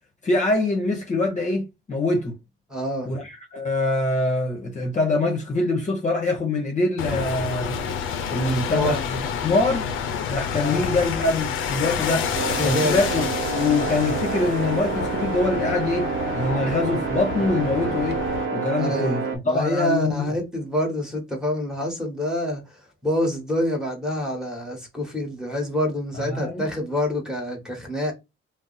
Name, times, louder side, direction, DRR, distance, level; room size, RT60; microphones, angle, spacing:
voice 1, 0.2-2.4 3.0-7.8 8.3-9.9 10.3-12.3 12.6-18.2 18.5-20.4 26.1-26.7, left 2 dB, 35° left, 0.8 m, -24 dB
voice 2, 2.7-3.1 8.3-9.0 10.6-10.8 12.6-13.0 18.8-22.6 23.0-28.1, left 1 dB, 5° right, 1.2 m, -27 dB
sound 1, 7.0-18.5, left 6 dB, 85° left, 0.6 m, -29 dB
sound 2, 12.3-19.4, right 4 dB, 75° right, 0.8 m, -28 dB
2.6 x 2.0 x 3.9 m
cardioid pair, 90°, 20 cm